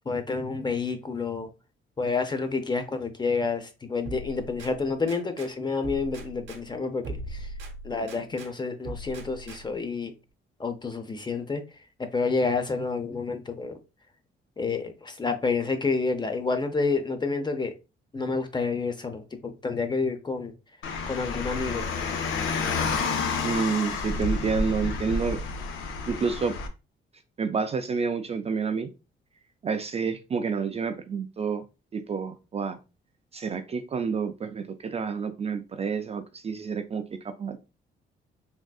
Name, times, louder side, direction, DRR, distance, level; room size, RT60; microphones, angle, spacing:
voice 1, 0.1-1.5 2.0-7.5 7.8-10.1 10.6-11.6 12.1-13.8 14.6-17.7 18.1-20.5 21.1-21.9, left 4 dB, 20° left, 0.6 m, -29 dB
sound 1, 4.0-5.5 5.8-8.5 8.8-9.9, right 1 dB, 75° right, 0.9 m, -40 dB
Car, 20.8-26.7, left 4 dB, 85° left, 0.6 m, -30 dB
voice 2, 23.4-25.4 26.1-26.5 27.4-28.9 29.6-31.6 31.9-32.8 33.3-37.6, right 5 dB, 30° right, 0.3 m, -29 dB
3.6 x 2.5 x 2.3 m
cardioid pair, 90°, 20 cm